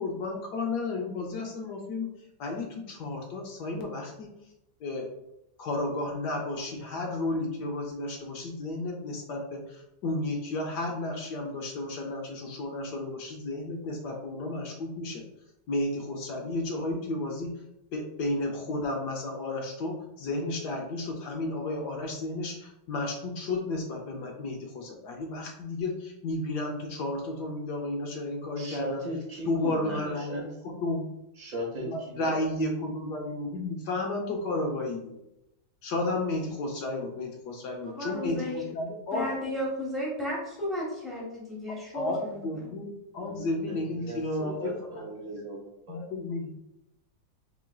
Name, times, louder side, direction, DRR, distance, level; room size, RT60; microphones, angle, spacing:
voice 1, 0.0-2.1 2.4-4.3 4.8-5.1 5.6-15.2 15.7-17.5 17.9-29.0 29.5-31.1 31.8-35.2 35.8-39.3 41.9-45.0 45.3-45.4 45.9-46.6, left 2 dB, 70° left, 1 dB, 1.1 m, -32 dB
voice 2, 28.6-30.4 31.4-32.3 43.2-46.0, right 1 dB, 35° right, -2 dB, 0.7 m, -38 dB
voice 3, 37.8-38.7 39.1-42.7, left 1 dB, ahead, -6 dB, 0.9 m, -34 dB
4.9 x 3.1 x 2.3 m, 0.89 s
omnidirectional pair, 2.1 m